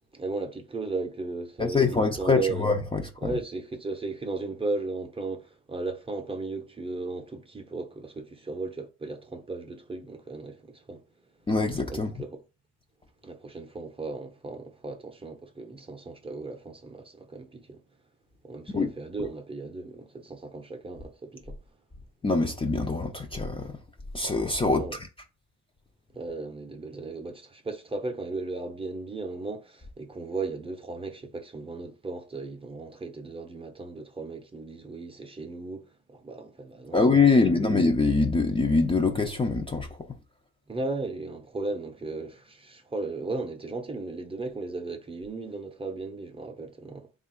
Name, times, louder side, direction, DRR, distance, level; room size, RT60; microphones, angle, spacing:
voice 1, 0.1-2.7 3.2-11.0 11.9-12.4 13.2-17.8 18.4-21.6 24.7-25.0 26.1-37.1 37.3-37.7 40.7-47.1, right 3 dB, 20° right, 0.7 m, -36 dB
voice 2, 1.6-3.3 11.5-12.1 18.7-18.9 22.2-23.8 24.1-25.0 36.9-39.9, left 3 dB, 20° left, 0.5 m, -24 dB
3.4 x 2.5 x 4.3 m
cardioid pair, 90°, 30 cm